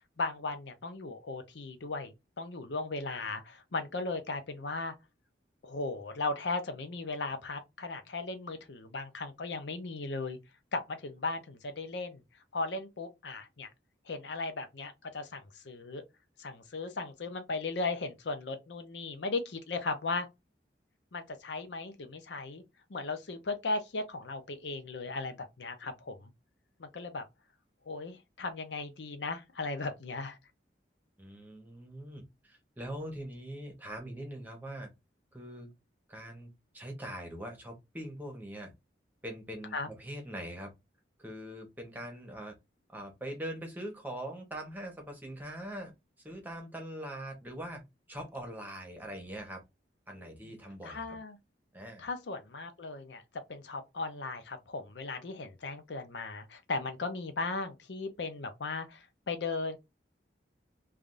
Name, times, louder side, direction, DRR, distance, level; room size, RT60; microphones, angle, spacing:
voice 1, 0.2-4.9 5.6-10.4 10.7-12.2 12.5-13.7 14.1-16.0 16.4-20.3 21.1-22.6 22.9-26.3 26.8-27.2 27.9-30.4 39.7-39.9 50.8-51.4 52.0-53.2 53.5-59.8, left 3 dB, 75° left, 0.6 m, -37 dB
voice 2, 31.2-34.9 35.3-35.7 36.1-38.7 39.2-40.7 41.2-42.5 42.9-45.9 46.2-47.8 48.1-49.6 50.1-51.1 51.7-52.1, right 1 dB, 10° right, 1.0 m, -42 dB
3.4 x 2.4 x 2.5 m
head